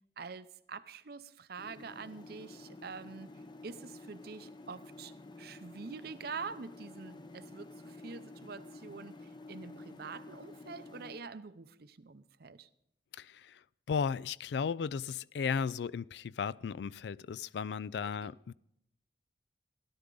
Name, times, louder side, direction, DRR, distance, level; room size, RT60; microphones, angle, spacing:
voice 1, 0.2-3.3 3.6-5.1 5.4-12.7 18.2-18.3, right 5 dB, 60° right, 0.7 m, -46 dB
sound 1, 1.6-11.2, left 2 dB, 25° left, 0.6 m, -51 dB
voice 2, 13.1-13.6 13.9-18.5, left 6 dB, 70° left, 0.3 m, -35 dB
16.5 x 11.0 x 3.9 m
head